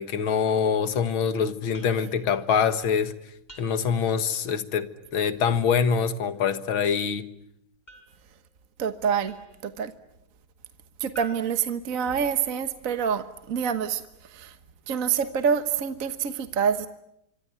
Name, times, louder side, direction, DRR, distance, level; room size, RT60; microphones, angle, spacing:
voice 1, 0.0-3.1 3.6-7.3, left 6 dB, 70° left, 2.3 m, -25 dB
sound 1, 1.7-4.1 7.9-9.7 11.1-12.6, right 2 dB, 20° left, 4.8 m, -51 dB
voice 2, 8.8-9.3 9.6-9.9 11.0-14.6 14.9-16.9, right 7 dB, 45° right, 1.4 m, -26 dB
26.0 x 25.0 x 9.3 m
omnidirectional pair, 2.4 m